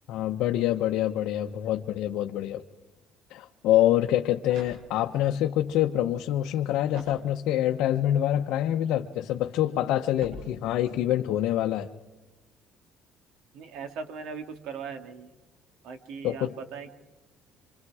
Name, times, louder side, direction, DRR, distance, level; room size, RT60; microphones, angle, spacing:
voice 1, 0.1-2.6 3.3-11.9 16.2-16.5, left 12 dB, 75° left, 3 dB, 0.9 m, -26 dB
sound 1, 4.4-5.3 6.9-7.8 10.2-11.1, equal, 90° right, 7.5 m, -46 dB
voice 2, 13.5-15.3 15.8-16.9, right 5 dB, 75° right, 7 dB, 2.2 m, -39 dB
27.0 x 25.5 x 4.9 m, 1.1 s
cardioid pair, 145°, 0 cm